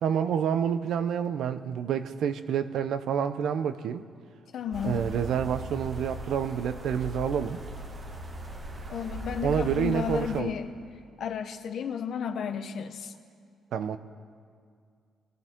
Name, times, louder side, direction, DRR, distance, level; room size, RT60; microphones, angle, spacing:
voice 1, 0.0-4.0 4.8-7.6 9.4-10.6 13.7-14.0, right 8 dB, 75° right, 10 dB, 0.7 m, -28 dB
voice 2, 4.5-5.1 8.9-10.7 11.2-13.1, left 7 dB, 65° left, 8 dB, 0.9 m, -33 dB
sound 1, 4.7-10.4, right 1 dB, 35° right, 1.5 m, -38 dB
21.5 x 15.0 x 3.7 m, 2.2 s
cardioid pair, 90°, 0 cm